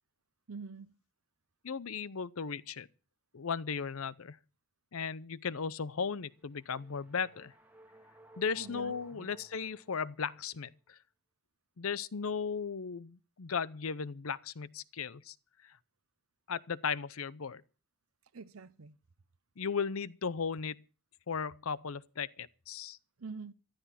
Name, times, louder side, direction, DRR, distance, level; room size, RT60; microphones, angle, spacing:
voice 1, 0.5-1.0 8.6-9.3 18.3-19.0 23.2-23.5, right 4 dB, 70° right, 0.7 m, -46 dB
voice 2, 1.6-2.9 3.3-4.4 4.9-7.5 8.4-11.0 11.8-15.4 15.6-15.8 16.5-17.6 19.6-20.8 21.3-23.0, left 6 dB, 70° left, 0.7 m, -36 dB
sound 1, 6.2-10.6, right 1 dB, 5° right, 1.6 m, -58 dB
14.5 x 12.5 x 5.8 m
head